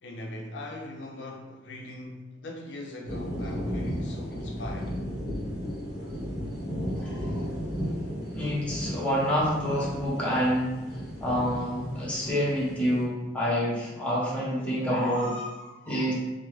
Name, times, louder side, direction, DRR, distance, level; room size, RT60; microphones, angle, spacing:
voice 1, 0.0-5.0, left 1 dB, 85° left, 0.4 m, -40 dB
sound 1, 3.1-13.0, equal, 20° right, 1.3 m, -34 dB
voice 2, 7.0-7.3 8.3-16.1, equal, 5° left, 0.8 m, -28 dB
3.4 x 2.0 x 3.1 m
head